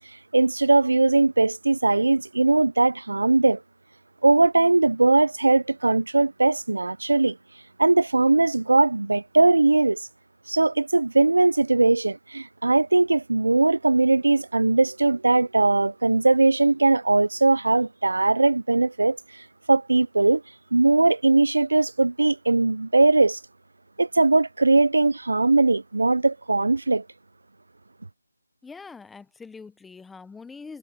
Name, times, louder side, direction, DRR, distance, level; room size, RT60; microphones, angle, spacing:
voice 1, 0.3-3.6 4.2-7.4 7.8-10.0 10.5-20.4 20.7-23.4 24.0-27.0, right 2 dB, 85° right, 0.4 m, -20 dB
voice 2, 28.6-30.8, left 4 dB, 5° left, 0.9 m, -43 dB
figure-of-eight pair, 175°, 0 cm